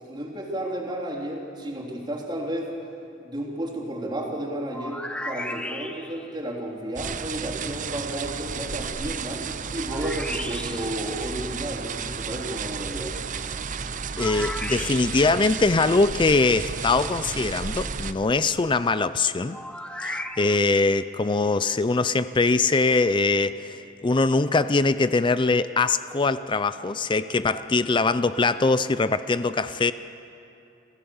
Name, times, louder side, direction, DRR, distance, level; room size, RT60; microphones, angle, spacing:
voice 1, 0.1-2.7 3.2-9.4 9.7-13.1, right 1 dB, 20° right, 3.4 m, -32 dB
sound 1, 4.7-6.3 9.9-11.0 14.2-15.4 19.5-20.8, left 1 dB, 5° left, 0.8 m, -35 dB
sound 2, 7.0-18.1, right 5 dB, 40° right, 0.7 m, -32 dB
voice 2, 14.2-19.6 20.0-29.9, left 3 dB, 25° left, 0.4 m, -22 dB
27.5 x 15.5 x 7.2 m
head